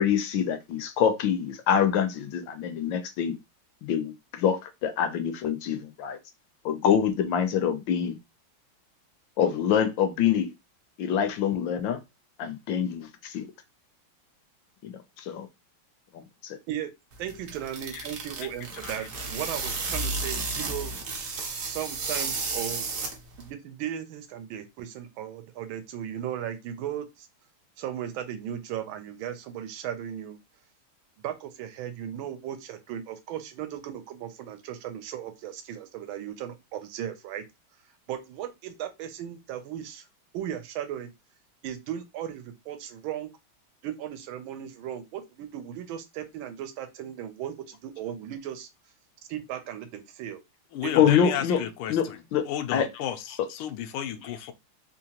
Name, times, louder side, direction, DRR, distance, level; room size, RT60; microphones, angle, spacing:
voice 1, 0.0-3.4 3.8-6.2 6.6-8.2 9.4-10.5 11.0-12.0 12.4-13.5 14.8-15.5 16.1-16.6 17.9-18.0 18.8-19.1 50.9-51.6 51.9-53.0 53.3-53.5 54.2-54.3, left 8 dB, 75° left, 1.2 m, -26 dB
sound 1, 17.1-23.5, right 3 dB, 55° right, 0.9 m, -33 dB
voice 2, 17.2-20.9 21.6-22.9 23.4-27.3 27.8-30.4 31.2-37.4 38.1-40.0 40.3-41.1 41.6-43.3 43.8-48.7 49.3-50.4 50.8-51.4, right 10 dB, 80° right, 1.4 m, -36 dB
voice 3, 50.7-52.1 52.4-54.5, left 10 dB, 90° left, 1.4 m, -33 dB
3.7 x 2.8 x 2.8 m
omnidirectional pair, 2.3 m